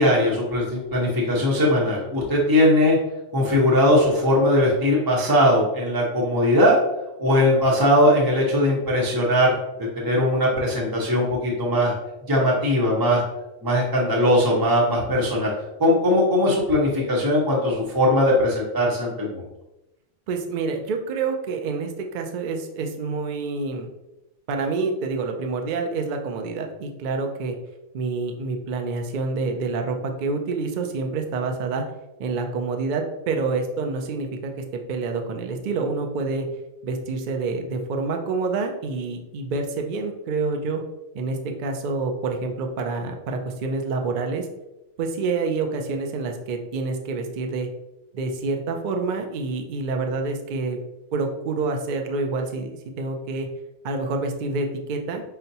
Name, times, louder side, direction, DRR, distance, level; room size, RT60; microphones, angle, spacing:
voice 1, 0.0-3.0 3.3-6.8 7.2-9.6 10.0-11.9 12.3-13.2 13.6-15.5 15.8-19.4, left 1 dB, 20° right, -3 dB, 0.7 m, -20 dB
voice 2, 20.3-23.9 24.5-27.6 27.9-31.8 32.2-36.5 36.8-40.8 41.1-44.5 45.0-47.7 48.1-50.8 51.1-53.5 53.8-55.2, right 3 dB, 70° right, 4 dB, 0.4 m, -27 dB
5.6 x 2.1 x 2.7 m, 0.96 s
omnidirectional pair, 1.4 m